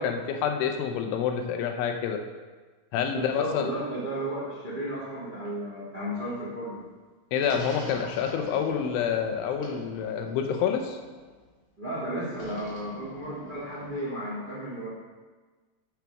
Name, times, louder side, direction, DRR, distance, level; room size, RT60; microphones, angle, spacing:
voice 1, 0.0-2.2 2.9-3.7 7.3-11.0, left 7 dB, 80° left, 4 dB, 3.2 m, -28 dB
voice 2, 3.1-6.8 11.8-14.9, right 1 dB, 25° right, -7 dB, 1.0 m, -34 dB
sound 1, 7.4-11.5 12.3-14.0, equal, 50° left, 4.5 m, -45 dB
12.0 x 8.2 x 3.5 m, 1.3 s
omnidirectional pair, 5.6 m